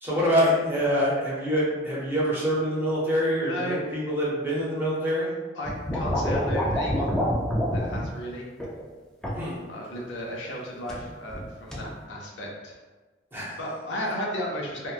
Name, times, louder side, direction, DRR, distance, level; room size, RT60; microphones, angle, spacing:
voice 1, 0.0-5.3 9.3-9.6 13.3-13.6, equal, 10° right, -7 dB, 0.7 m, -25 dB
voice 2, 3.4-3.8 5.5-7.2 7.7-8.5 9.7-12.8 13.6-14.9, equal, 85° left, -2 dB, 0.6 m, -34 dB
sound 1, 5.7-8.1 8.6-8.8 9.2-9.5 10.9-11.4 11.7-11.9, equal, 5° left, 0.4 m, -27 dB
2.9 x 2.2 x 2.4 m, 1.3 s
head